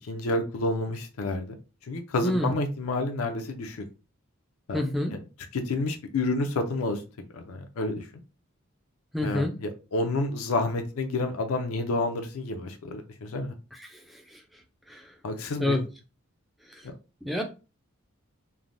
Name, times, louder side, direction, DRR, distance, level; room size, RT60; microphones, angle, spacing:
voice 1, 0.1-1.6 1.9-3.8 4.7-4.8 5.1-5.2 5.5-7.0 7.3-8.1 9.2-13.5 15.2-15.8 16.8-16.9, left 2 dB, 75° left, 0.4 m, -29 dB
voice 2, 4.7-5.1 9.1-9.5 13.8-14.0 14.3-14.4 14.9-15.0 15.6-15.8 17.2-17.4, left 1 dB, ahead, 0.4 m, -27 dB
3.2 x 2.1 x 2.5 m
head